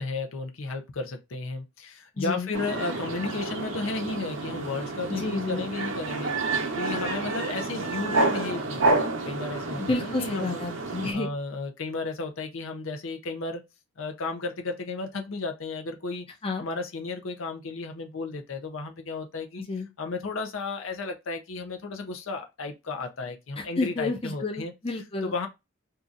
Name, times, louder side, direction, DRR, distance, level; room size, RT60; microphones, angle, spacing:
voice 1, 0.0-10.6 11.1-13.6 14.0-16.3 16.6-19.6 20.0-24.7 25.2-25.5, left 3 dB, 75° left, 0.6 m, -34 dB
voice 2, 2.2-2.5 5.1-5.6 9.8-11.3 16.4-16.6 19.7-19.9 23.6-25.3, left 3 dB, 25° left, 0.5 m, -30 dB
sound 1, 2.5-11.1, right 2 dB, 65° right, 0.8 m, -29 dB
2.8 x 2.4 x 3.7 m
head